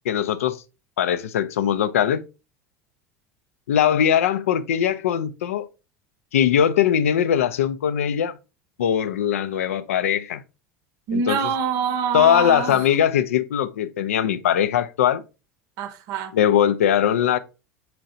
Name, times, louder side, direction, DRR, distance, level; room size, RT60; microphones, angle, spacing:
voice 1, 0.1-0.6 1.0-2.2 3.7-5.7 6.3-8.3 8.8-10.4 11.1-11.4 12.1-15.2 16.3-17.4, left 9 dB, 80° left, 0.3 m, -20 dB
voice 2, 11.1-12.9 15.8-16.3, right 6 dB, 55° right, 0.6 m, -25 dB
4.4 x 3.8 x 2.5 m
hypercardioid pair, 75°, 8 cm